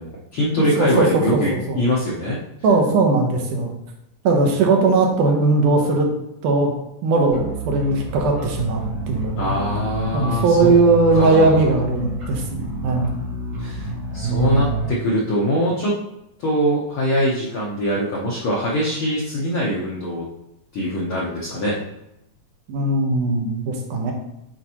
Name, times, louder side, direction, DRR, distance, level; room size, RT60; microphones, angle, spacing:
voice 1, 0.0-1.5 1.8-2.4 9.3-10.7 11.1-11.6 13.6-13.9 14.1-15.9 16.4-20.2 20.7-21.7, equal, 85° left, -5 dB, 1.1 m, -22 dB
voice 2, 0.8-1.8 2.6-3.7 4.2-6.1 6.4-6.7 7.0-9.5 10.1-13.1 14.2-14.8 22.7-24.1, right 3 dB, 75° right, 1 dB, 2.4 m, -19 dB
sound 1, 7.3-14.9, right 1 dB, 50° right, 1.2 m, -29 dB
8.0 x 4.2 x 2.9 m, 0.84 s
omnidirectional pair, 3.8 m